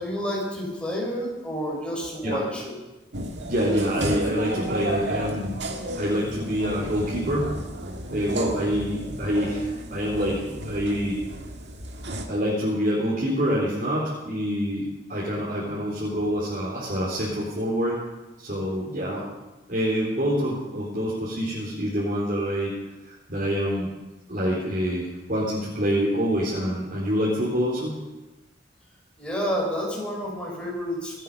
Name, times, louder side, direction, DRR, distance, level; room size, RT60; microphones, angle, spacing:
voice 1, 0.0-2.7 29.2-31.2, equal, 5° left, -4 dB, 6.0 m, -29 dB
sound 1, 3.1-12.3, right 1 dB, 70° right, 2.0 m, -33 dB
voice 2, 3.5-5.6 6.0-7.5 8.1-11.2 12.3-18.0 18.4-19.3 19.7-22.7 23.1-23.9 24.3-28.0, equal, 50° right, -6 dB, 3.7 m, -26 dB
26.5 x 9.2 x 5.5 m, 1.1 s
head